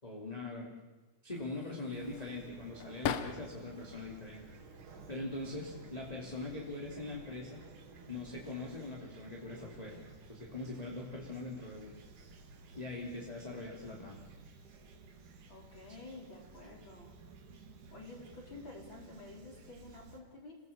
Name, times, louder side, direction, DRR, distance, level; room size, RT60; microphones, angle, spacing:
voice 1, 0.0-0.7 1.2-4.5 5.1-7.6 8.1-10.0 10.3-11.9 12.7-14.2, left 2 dB, 15° left, -2 dB, 2.7 m, -42 dB
sound 1, 1.3-3.8 4.2-5.1 6.0-6.3 6.7-7.5, left 8 dB, 65° left, 1.9 m, -41 dB
Fowl / Chirp tweet, 1.9-20.2, right 4 dB, 85° right, 3.6 m, -55 dB
voice 2, 15.5-17.1 17.9-20.6, left 2 dB, 35° left, -1 dB, 5.2 m, -50 dB
27.5 x 18.0 x 7.3 m, 1.2 s
omnidirectional pair, 3.5 m